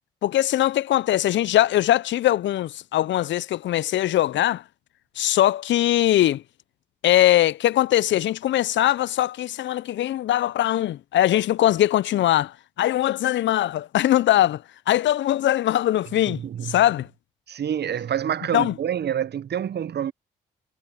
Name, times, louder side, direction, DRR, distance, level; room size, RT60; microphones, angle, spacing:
voice 1, 0.2-4.6 5.2-6.4 7.0-14.6 14.9-17.1 18.5-18.7, left 13 dB, 65° left, 0.8 m, -21 dB
voice 2, 16.3-16.8 17.5-20.1, right 9 dB, 55° right, 1.2 m, -27 dB
hypercardioid pair, 40°, 21 cm